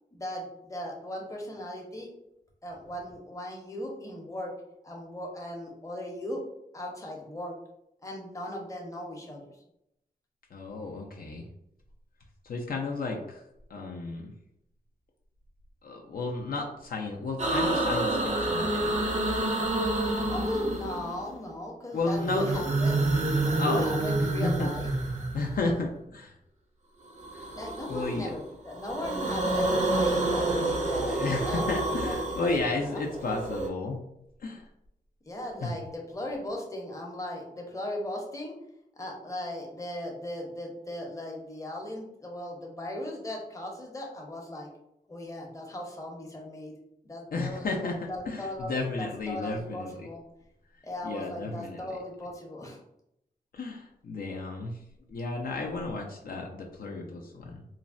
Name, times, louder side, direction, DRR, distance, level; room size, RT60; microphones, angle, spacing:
voice 1, 0.1-2.1 2.6-4.5 4.8-6.4 6.7-7.6 8.0-9.6 20.0-22.9 23.2-24.9 27.6-33.3 35.2-38.5 38.9-44.7 45.1-46.7 47.0-50.2 50.8-52.8, left 1 dB, 20° left, -1 dB, 0.7 m, -37 dB
voice 2, 10.5-11.5 12.4-13.4 13.7-14.3 15.8-19.0 21.9-22.6 23.6-23.9 24.4-24.7 25.3-26.3 27.3-27.5 27.9-28.3 31.1-34.0 34.4-34.7 35.6-35.7 47.3-50.1 51.0-51.8 53.5-54.8 55.1-57.6, left 3 dB, 65° left, 0 dB, 0.4 m, -33 dB
sound 1, 17.4-21.3 22.1-25.8 27.2-28.3 28.7-33.7, right 2 dB, 45° right, 0.5 m, -28 dB
3.1 x 2.0 x 2.4 m, 0.80 s
wide cardioid pair, 95°, 16 cm